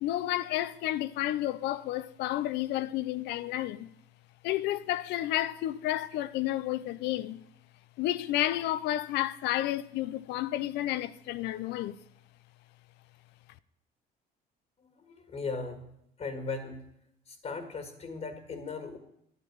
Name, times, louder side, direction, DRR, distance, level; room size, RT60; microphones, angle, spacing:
voice 1, 0.0-3.9 4.4-7.4 8.0-12.0, left 14 dB, 85° left, 0.6 m, -31 dB
voice 2, 14.8-15.9 16.2-16.9 17.3-19.0, left 4 dB, 40° left, 1.9 m, -38 dB
10.5 x 8.6 x 9.5 m
cardioid pair, 110°, 17 cm